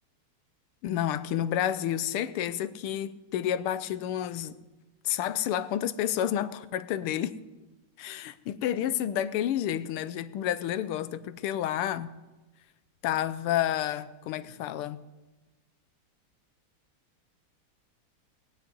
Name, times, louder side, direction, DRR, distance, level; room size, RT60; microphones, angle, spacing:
voice 1, 0.8-4.6 5.0-7.3 8.0-12.1 13.0-15.0, left 11 dB, 80° left, 1.6 m, -30 dB
19.0 x 6.6 x 9.6 m
omnidirectional pair, 2.4 m